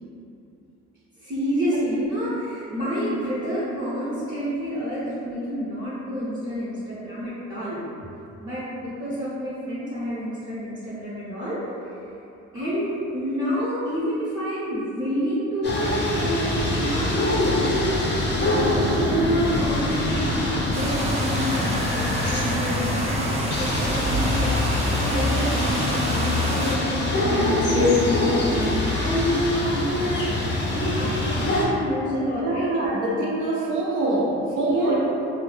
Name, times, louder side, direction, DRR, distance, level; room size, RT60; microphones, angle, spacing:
voice 1, 1.2-7.8 8.4-11.6 12.5-24.5 24.9-32.7 34.7-35.0, equal, 40° right, -11 dB, 0.7 m, -29 dB
sound 1, 15.6-31.7, left 1 dB, 35° left, 0.5 m, -24 dB
sound 2, 20.7-26.8, right 1 dB, 20° right, 0.4 m, -29 dB
voice 2, 27.7-28.0 32.4-35.0, equal, 85° right, -5 dB, 0.6 m, -24 dB
2.2 x 2.0 x 3.1 m, 2.8 s
cardioid pair, 90°, 30 cm